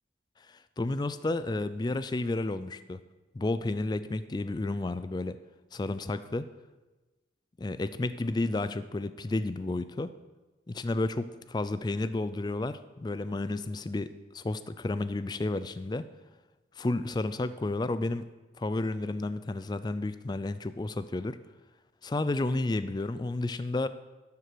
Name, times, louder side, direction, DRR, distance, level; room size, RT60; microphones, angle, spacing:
voice 1, 0.5-3.0 3.3-5.4 5.7-6.5 7.6-10.1 10.7-16.1 16.8-18.3 18.6-21.4 22.0-23.9, left 2 dB, 20° left, 13 dB, 0.3 m, -31 dB
12.5 x 4.7 x 6.6 m, 1.2 s
head